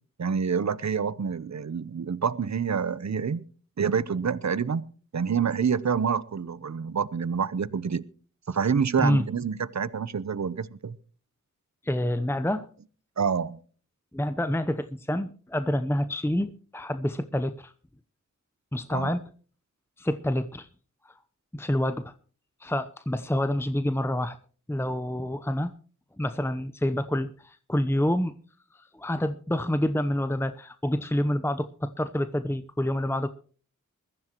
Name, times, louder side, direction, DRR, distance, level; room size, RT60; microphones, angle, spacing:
voice 1, 0.2-3.4 3.8-4.8 5.1-8.0 8.5-11.0 13.2-13.6 18.9-19.1, right 6 dB, 60° right, 18 dB, 0.8 m, -27 dB
voice 2, 11.8-12.7 14.1-17.7 18.7-19.2 20.0-20.7 21.0-21.1 21.5-22.1 22.6-24.4 24.7-25.7 26.2-28.3 28.7-33.3, left 1 dB, 10° left, 11 dB, 0.8 m, -27 dB
21.5 x 14.5 x 3.0 m, 0.41 s
wide cardioid pair, 45°, 31 cm